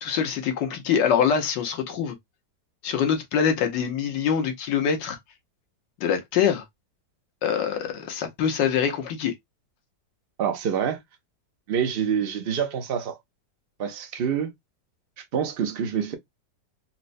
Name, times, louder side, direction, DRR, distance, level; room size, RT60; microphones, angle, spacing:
voice 1, 0.0-2.1 2.8-5.2 6.0-6.6 7.4-9.3, left 7 dB, 90° left, 1.5 m, -24 dB
voice 2, 10.4-11.0 11.7-13.2 13.8-14.5 15.2-16.2, right 7 dB, 85° right, 0.5 m, -26 dB
4.2 x 2.0 x 2.4 m
omnidirectional pair, 1.9 m